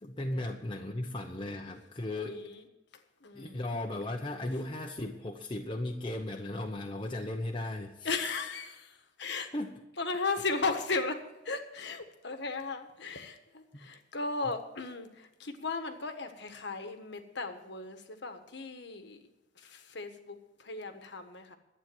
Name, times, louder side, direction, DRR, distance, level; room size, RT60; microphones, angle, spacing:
voice 1, 0.0-2.4 3.3-8.2 9.5-9.7 13.7-13.9, left 1 dB, 25° left, 1 dB, 0.8 m, -36 dB
voice 2, 2.2-2.6 3.2-3.6 8.0-9.5 10.0-19.2 19.6-21.6, left 3 dB, 60° left, 8 dB, 1.4 m, -36 dB
12.0 x 8.8 x 7.8 m, 1.0 s
head